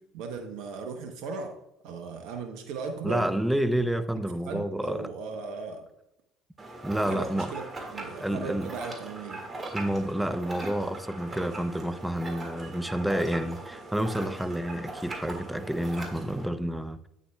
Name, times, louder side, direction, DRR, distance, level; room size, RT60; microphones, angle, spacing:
voice 1, 0.0-3.3 4.4-5.9 7.0-7.6 7.9-9.4, right 4 dB, 70° right, 5 dB, 0.8 m, -37 dB
voice 2, 3.0-5.1 6.8-7.5 8.2-8.7 9.7-17.1, right 1 dB, 5° right, 11 dB, 0.6 m, -29 dB
sound 1, 6.6-16.5, right 2 dB, 30° right, 1.9 m, -40 dB
8.5 x 7.4 x 2.2 m, 0.81 s
hypercardioid pair, 65°, 0 cm